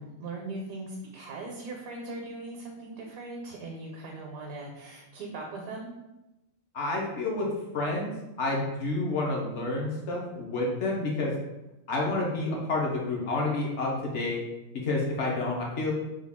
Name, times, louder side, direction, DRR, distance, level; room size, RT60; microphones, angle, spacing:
voice 1, 0.0-5.9, right 2 dB, 80° right, -1 dB, 1.0 m, -39 dB
voice 2, 6.7-7.5 7.7-8.1 8.4-11.3 11.9-14.4 14.7-15.9, left 2 dB, 60° left, -2 dB, 0.9 m, -29 dB
3.4 x 2.3 x 3.5 m, 0.96 s
omnidirectional pair, 1.5 m